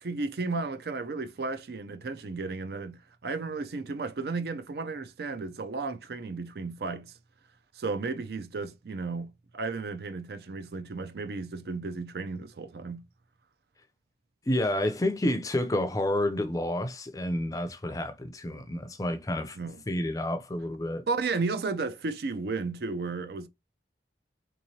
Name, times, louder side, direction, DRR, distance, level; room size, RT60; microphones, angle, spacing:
voice 1, 0.0-7.1 7.7-13.0 19.6-19.8 21.1-23.5, right 4 dB, 60° right, 0.4 m, -34 dB
voice 2, 14.5-19.6 19.9-21.0, left 1 dB, 20° left, 0.4 m, -29 dB
3.6 x 3.0 x 2.7 m
head